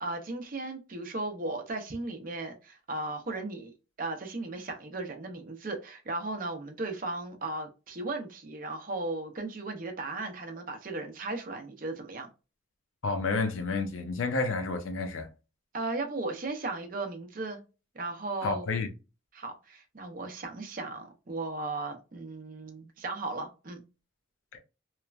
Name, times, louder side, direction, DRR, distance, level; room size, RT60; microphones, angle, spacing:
voice 1, 0.0-3.7 4.0-12.3 15.7-17.6 17.9-18.7 19.3-23.8, right 2 dB, 40° right, 0.6 m, -36 dB
voice 2, 13.0-15.3 18.4-18.9 24.5-24.6, left 3 dB, 75° left, 0.6 m, -30 dB
3.1 x 2.1 x 2.4 m
head